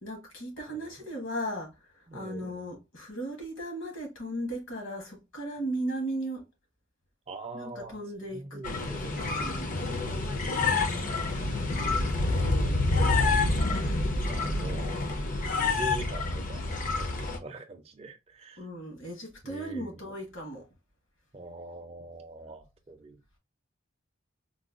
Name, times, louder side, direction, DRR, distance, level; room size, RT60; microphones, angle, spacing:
voice 1, 0.0-6.4 7.5-9.9 12.1-12.9 18.6-20.7, right 1 dB, 65° left, 1.2 m, -37 dB
voice 2, 0.7-1.1 2.1-2.6 7.3-8.0 8.3-9.3 10.7-11.7 14.2-14.9 15.5-18.6 19.4-20.0 21.3-23.2, right 2 dB, 30° right, 0.4 m, -44 dB
sound 1, 8.6-17.4, left 3 dB, 40° left, 0.5 m, -28 dB
3.9 x 2.2 x 2.3 m
head